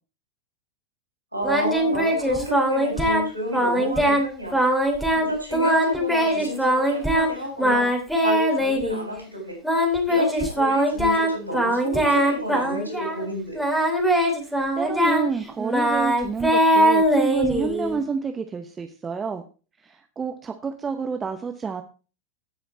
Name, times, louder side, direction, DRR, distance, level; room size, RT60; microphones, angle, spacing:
voice 1, 1.3-4.6 5.1-7.9 8.2-9.6 10.1-13.6, equal, 85° left, 1 dB, 3.8 m, -30 dB
Singing, 1.4-3.3 3.5-4.2 4.5-5.3 5.5-7.3 7.6-9.0 9.6-13.2 13.6-18.0, equal, 5° left, 3.0 m, -21 dB
voice 2, 14.4-19.4 19.8-21.8, right 5 dB, 20° right, 6 dB, 0.9 m, -29 dB
16.0 x 5.6 x 4.3 m, 0.34 s
figure-of-eight pair, 90°, 0 cm